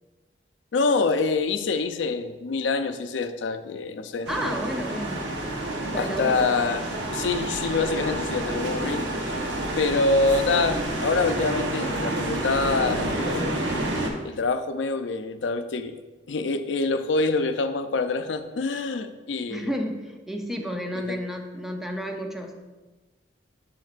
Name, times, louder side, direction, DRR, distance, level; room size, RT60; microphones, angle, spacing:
voice 1, 0.7-4.3 5.9-6.9 7.1-9.1 9.8-13.5 14.2-16.0 16.3-19.7 20.9-21.2, left 3 dB, 80° left, 9 dB, 0.5 m, -25 dB
voice 2, 4.3-5.2 5.8-6.4 8.8-9.1 19.5-22.5, equal, ahead, 3 dB, 0.6 m, -31 dB
sound 1, 4.3-14.1, right 1 dB, 75° right, 1.0 m, -29 dB
7.5 x 7.0 x 2.4 m, 1.2 s
head